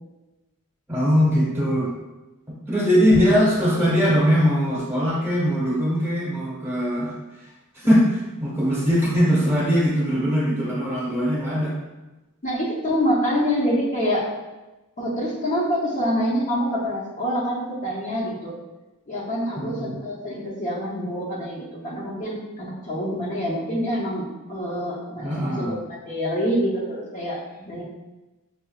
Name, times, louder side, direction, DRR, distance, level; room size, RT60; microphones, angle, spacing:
voice 1, 0.9-1.9 2.7-7.1 7.7-11.8 19.6-19.9 25.2-25.7, equal, 10° right, -6 dB, 1.1 m, -21 dB
voice 2, 12.4-14.3 15.0-18.5 19.1-27.8, equal, 35° left, -6 dB, 0.7 m, -26 dB
5.5 x 2.5 x 2.3 m, 1.1 s
head